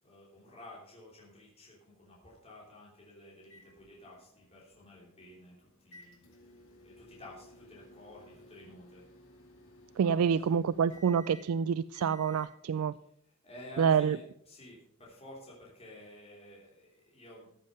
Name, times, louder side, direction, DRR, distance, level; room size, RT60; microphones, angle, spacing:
voice 1, 0.0-9.1 10.0-10.5 13.4-17.5, left 1 dB, 30° left, -4 dB, 3.2 m, -52 dB
sound 1, 3.4-12.5, left 1 dB, 65° left, 2.4 m, -57 dB
voice 2, 10.0-12.9 13.8-14.2, right 7 dB, 80° right, 16 dB, 0.3 m, -27 dB
14.0 x 7.4 x 5.2 m, 0.71 s
head